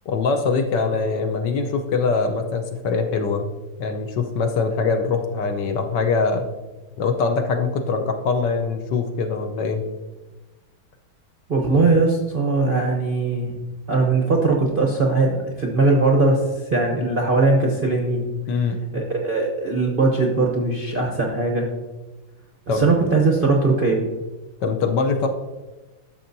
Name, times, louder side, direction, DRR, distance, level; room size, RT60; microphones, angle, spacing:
voice 1, 0.1-3.5 3.8-6.5 7.0-9.8 18.5-18.8 22.7-22.9 24.6-25.3, left 4 dB, 70° left, 5 dB, 1.2 m, -23 dB
voice 2, 11.5-13.5 13.9-18.3 18.9-21.7 22.7-24.0, right 3 dB, 50° right, -1 dB, 0.6 m, -20 dB
12.0 x 6.2 x 2.6 m, 1.2 s
omnidirectional pair, 2.2 m